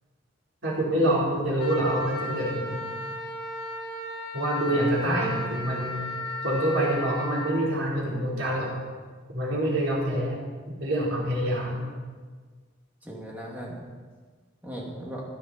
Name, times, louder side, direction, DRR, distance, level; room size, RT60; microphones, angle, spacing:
voice 1, 0.6-2.8 4.3-6.0 6.4-8.7 9.3-10.4 10.7-11.8, right 1 dB, 85° right, -5 dB, 4.3 m, -26 dB
Wind instrument woodwind instrument, 1.6-7.6, left 1 dB, 45° left, 3.7 m, -35 dB
voice 2, 4.6-5.3 13.0-13.8 14.6-15.2, equal, 10° right, -3 dB, 2.5 m, -37 dB
15.5 x 10.0 x 4.4 m, 1.5 s
head